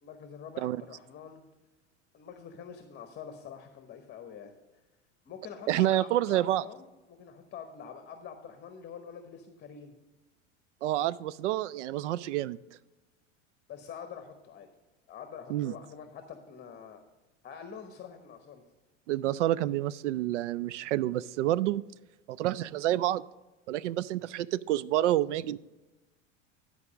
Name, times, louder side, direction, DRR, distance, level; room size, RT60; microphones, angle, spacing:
voice 1, 0.0-1.4 2.1-4.5 5.3-9.9 13.7-14.7 15.1-17.0 17.4-18.6, left 7 dB, 30° left, 7 dB, 1.0 m, -46 dB
voice 2, 5.7-6.6 10.8-12.6 15.5-15.7 19.1-21.8 22.3-23.2 23.7-25.6, right 14 dB, 70° right, 19 dB, 0.5 m, -28 dB
11.0 x 4.8 x 6.2 m, 1.1 s
hypercardioid pair, 80°, 37 cm